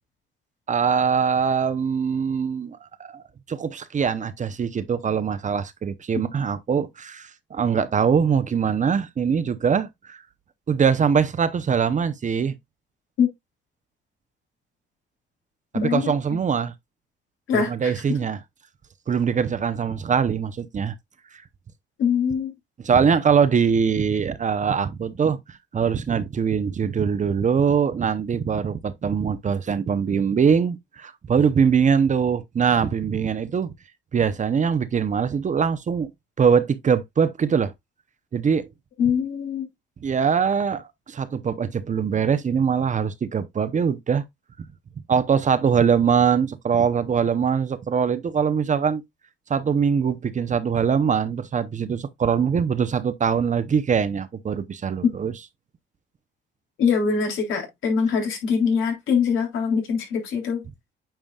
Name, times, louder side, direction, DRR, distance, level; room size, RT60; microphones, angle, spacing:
voice 1, 0.7-10.2 10.7-12.6 15.8-16.7 17.5-18.4 19.1-20.9 22.8-33.7 34.1-36.1 36.4-37.7 38.3-38.7 40.0-44.2 44.6-44.7 45.1-49.0 49.5-55.3, right 6 dB, 40° right, 0.8 m, -22 dB
voice 2, 15.7-16.1 17.5-17.9 22.0-22.5 39.0-39.7 56.8-60.6, left 6 dB, 80° left, 3.4 m, -23 dB
9.0 x 5.1 x 2.4 m
cardioid pair, 90°, 20 cm